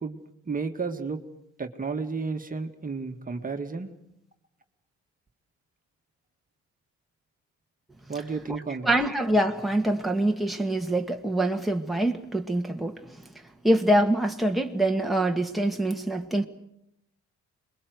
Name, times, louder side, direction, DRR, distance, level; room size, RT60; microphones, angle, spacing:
voice 1, 0.5-1.2 1.6-3.9 8.1-8.9, right 4 dB, 30° right, 2.0 m, -32 dB
voice 2, 8.8-13.2 13.6-16.5, right 1 dB, ahead, 2.0 m, -25 dB
26.0 x 22.0 x 8.0 m
cardioid pair, 90°, 30 cm